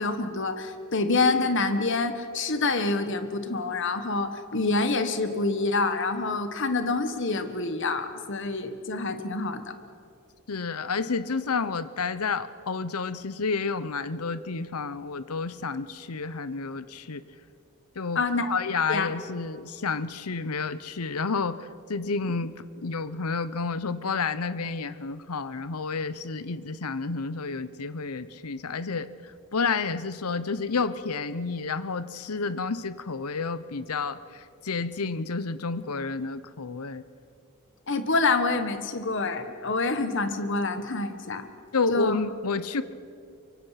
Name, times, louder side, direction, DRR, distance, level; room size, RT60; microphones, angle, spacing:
voice 1, 0.0-9.6 18.1-18.5 18.9-19.1 37.9-41.5 41.9-42.2, left 3 dB, 55° left, 9 dB, 1.5 m, -27 dB
voice 2, 10.5-17.2 18.0-18.2 18.5-29.1 29.5-37.0 41.7-42.8, left 4 dB, 85° left, 15 dB, 0.8 m, -30 dB
24.0 x 24.0 x 5.9 m, 2.4 s
head